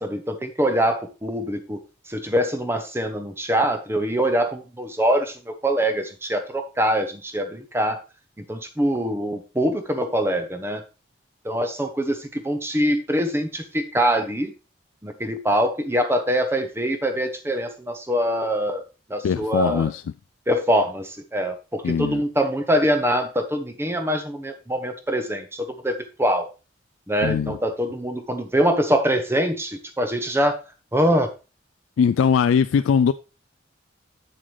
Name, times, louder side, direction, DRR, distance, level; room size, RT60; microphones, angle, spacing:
voice 1, 0.0-1.8 2.1-8.0 8.4-10.8 11.4-14.5 15.0-18.8 19.1-19.9 20.5-26.5 27.1-30.6 30.9-31.3, equal, 10° right, 0.8 m, -24 dB
voice 2, 19.2-20.0 21.8-22.2 27.2-27.6 32.0-33.1, left 7 dB, 85° left, 0.3 m, -20 dB
7.8 x 7.5 x 3.2 m
head